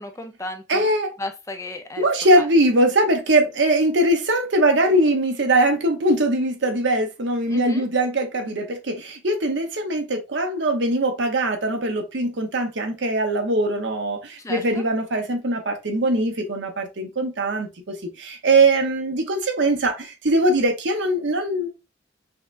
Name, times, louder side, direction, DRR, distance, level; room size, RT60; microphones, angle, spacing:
voice 1, 0.0-0.9 1.2-2.1 2.3-2.5 7.5-7.9 14.4-14.6, left 1 dB, 15° left, 0.4 m, -33 dB
voice 2, 0.7-1.1 2.0-21.7, right 1 dB, 65° right, 0.9 m, -21 dB
5.5 x 2.2 x 2.5 m
head